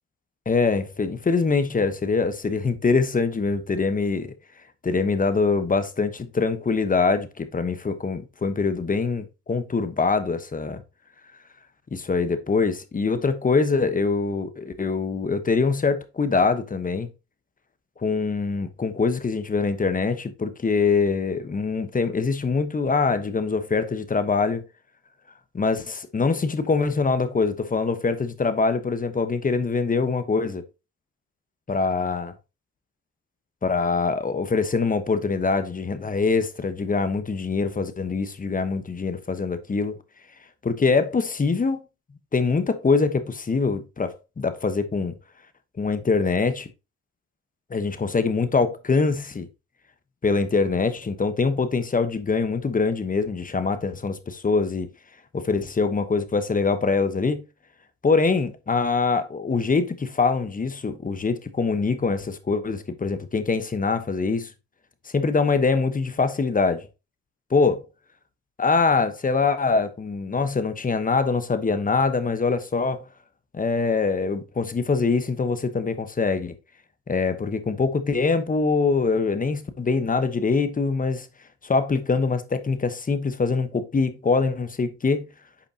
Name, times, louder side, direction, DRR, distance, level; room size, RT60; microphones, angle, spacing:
voice 1, 0.5-4.3 4.8-10.8 11.9-17.1 18.0-24.6 25.5-30.6 31.7-32.3 33.6-39.9 40.6-41.8 42.3-45.2 45.8-46.7 47.7-49.5 50.2-54.9 55.3-57.4 58.0-64.5 65.0-66.9 67.5-67.8 68.6-73.0 73.5-76.5 77.1-81.3 81.6-85.3, left 4 dB, 25° left, 1.1 m, -24 dB
8.4 x 5.0 x 2.8 m
cardioid pair, 90°, 30 cm